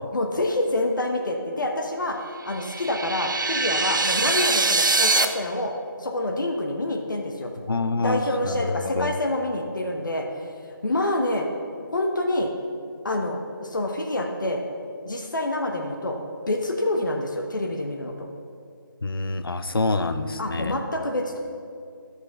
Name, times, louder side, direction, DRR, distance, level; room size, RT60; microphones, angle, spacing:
voice 1, 0.1-2.2 2.4-5.7 6.0-7.5 8.0-10.3 10.8-11.5 11.9-12.5 13.0-14.6 15.1-16.2 16.5-18.3 20.4-21.4, left 1 dB, 60° left, 2 dB, 1.1 m, -27 dB
sound 1, 2.5-5.3, right 3 dB, 60° right, 0.8 m, -23 dB
voice 2, 7.7-9.1 19.0-20.8, left 3 dB, 85° left, 10 dB, 0.7 m, -26 dB
12.0 x 5.6 x 5.9 m, 2.3 s
figure-of-eight pair, 175°, 12 cm